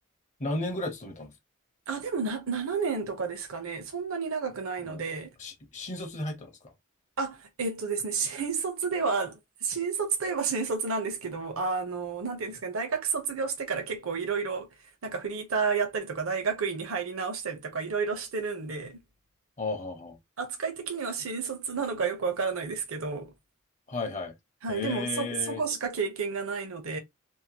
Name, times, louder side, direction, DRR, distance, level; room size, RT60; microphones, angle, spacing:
voice 1, 0.4-1.3 4.9-5.0 5.4-6.5 19.6-20.2 23.9-24.3 24.7-25.6, left 2 dB, 35° left, 0.6 m, -34 dB
voice 2, 1.9-5.3 7.2-14.7 15.0-19.0 20.4-23.3 24.6-27.0, right 5 dB, 75° right, 0.7 m, -31 dB
2.7 x 2.1 x 2.9 m
head